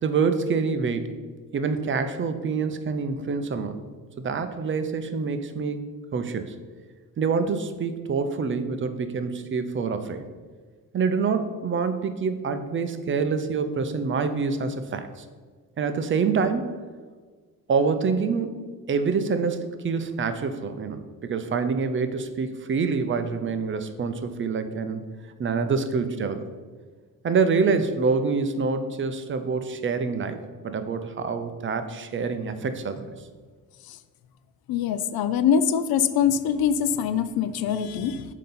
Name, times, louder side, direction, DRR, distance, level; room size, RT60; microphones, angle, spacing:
voice 1, 0.0-1.1 1.5-3.8 4.2-6.5 7.2-10.3 10.9-15.2 15.8-16.8 17.7-18.5 18.9-25.0 25.4-26.4 27.2-30.4 30.6-33.1, right 5 dB, 35° right, 9 dB, 0.4 m, -26 dB
voice 2, 34.7-38.3, left 8 dB, 85° left, 13 dB, 0.5 m, -23 dB
7.5 x 2.8 x 5.5 m, 1.5 s
wide cardioid pair, 160°, 35 cm